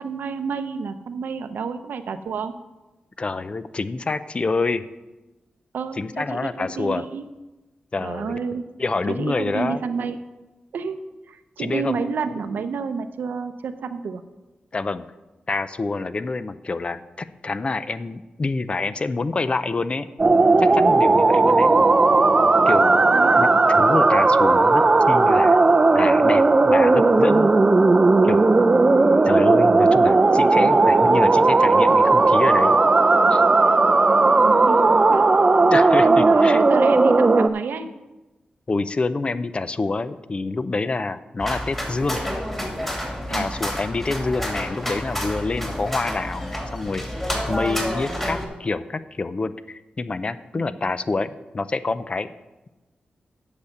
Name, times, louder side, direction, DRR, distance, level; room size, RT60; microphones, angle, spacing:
voice 1, 0.0-2.5 5.7-7.3 8.0-8.6 9.1-10.2 10.7-11.0 11.3-14.2 23.1-23.5 33.6-33.7 34.0-35.3 36.0-37.9 43.3-43.5 50.5-50.8, right 5 dB, 85° right, 9 dB, 0.7 m, -30 dB
voice 2, 3.2-4.9 6.0-7.0 7.9-8.4 8.8-9.8 11.6-12.0 14.7-15.0 15.5-20.1 20.6-21.7 22.7-23.1 23.3-25.6 25.9-27.5 28.2-28.5 29.2-32.8 33.3-33.4 35.7-36.6 38.7-42.2 43.3-47.0 47.5-52.3, left 3 dB, 35° left, 14 dB, 0.5 m, -27 dB
sound 1, 20.2-37.5, right 3 dB, 30° right, 0.5 m, -16 dB
sound 2, 41.4-48.5, equal, 10° left, 2.7 m, -29 dB
8.1 x 6.6 x 7.0 m, 1.1 s
cardioid pair, 85°, 3 cm